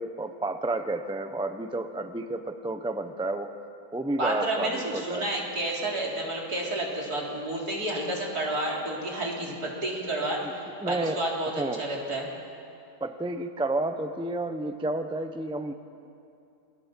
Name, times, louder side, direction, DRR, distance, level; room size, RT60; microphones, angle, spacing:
voice 1, 0.0-3.5 3.9-5.3 10.8-11.2 11.6-11.8 13.0-15.7, right 2 dB, 5° right, 8 dB, 0.6 m, -31 dB
voice 2, 4.2-12.3, right 1 dB, 70° right, -2 dB, 4.2 m, -30 dB
27.0 x 20.0 x 7.4 m, 2.7 s
omnidirectional pair, 1.7 m